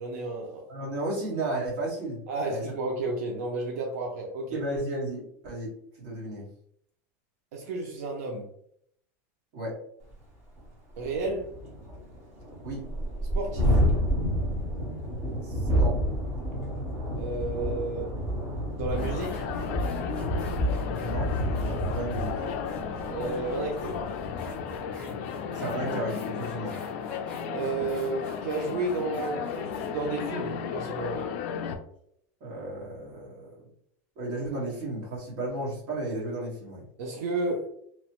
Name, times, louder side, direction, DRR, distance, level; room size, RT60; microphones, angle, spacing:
voice 1, 0.0-0.6 2.3-4.6 7.5-8.5 11.0-11.5 13.3-13.8 17.2-18.1 18.8-19.5 23.0-24.0 27.5-31.3 37.0-37.7, right 3 dB, 85° right, 0 dB, 0.5 m, -32 dB
voice 2, 0.7-2.6 4.5-6.5 9.5-9.8 12.6-12.8 15.4-16.0 20.8-22.3 25.5-26.8 32.4-33.5 34.2-36.8, right 2 dB, 45° right, -5 dB, 1.3 m, -34 dB
Thunderstorm, 10.1-10.2 10.6-10.7 11.0-24.6, equal, 25° right, 1.1 m, -29 dB
sound 1, 18.3-18.4 18.9-31.2, left 1 dB, 10° left, 0.9 m, -50 dB
sound 2, 18.9-31.8, left 6 dB, 50° left, 0.3 m, -34 dB
3.0 x 2.1 x 2.9 m, 0.68 s
supercardioid pair, 175°, 8 cm